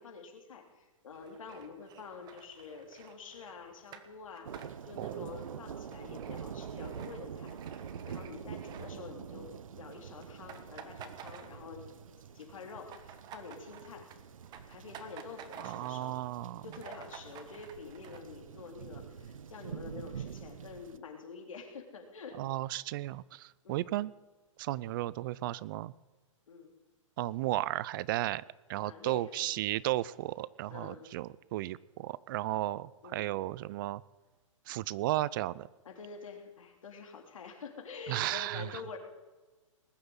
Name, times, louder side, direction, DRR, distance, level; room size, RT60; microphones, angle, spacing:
voice 1, 0.0-11.8 12.3-14.1 14.6-16.2 16.5-22.4 23.6-23.9 26.5-26.7 28.8-29.5 30.7-31.1 33.0-33.3 35.9-39.0, left 4 dB, 80° left, 3 dB, 3.5 m, -47 dB
sound 1, 1.1-9.5 9.8-10.0 10.2-12.0 12.3-16.1 16.4-16.5 16.7-18.2, right 8 dB, 25° right, 1.4 m, -52 dB
sound 2, 4.4-21.0, right 7 dB, 80° right, 0.9 m, -46 dB
voice 2, 5.0-5.3 15.6-16.7 22.4-24.1 24.6-25.9 27.2-28.4 28.7-34.0 34.7-35.7 38.1-38.8, right 16 dB, 40° right, 21 dB, 0.4 m, -34 dB
20.0 x 7.9 x 8.8 m, 1.2 s
hypercardioid pair, 135°, 17 cm